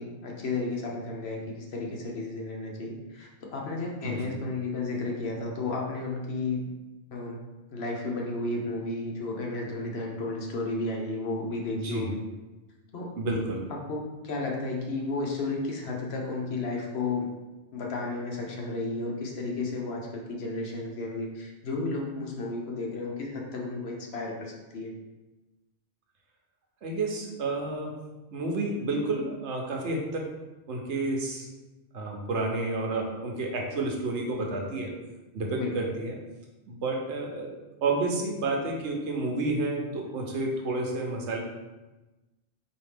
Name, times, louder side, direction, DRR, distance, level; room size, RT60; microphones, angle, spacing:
voice 1, 0.0-6.7 7.1-7.4 7.7-12.2 12.9-13.1 13.9-17.3 17.7-24.9 35.6-35.7, left 3 dB, 70° left, -1 dB, 1.0 m, -33 dB
voice 2, 4.0-4.3 11.7-12.1 13.2-13.6 26.8-28.0 28.3-30.3 30.7-31.5 31.9-34.9 35.3-36.2 36.7-37.5 37.8-41.4, right 2 dB, 85° right, 0 dB, 1.0 m, -30 dB
4.3 x 2.8 x 3.3 m, 1.1 s
omnidirectional pair, 1.2 m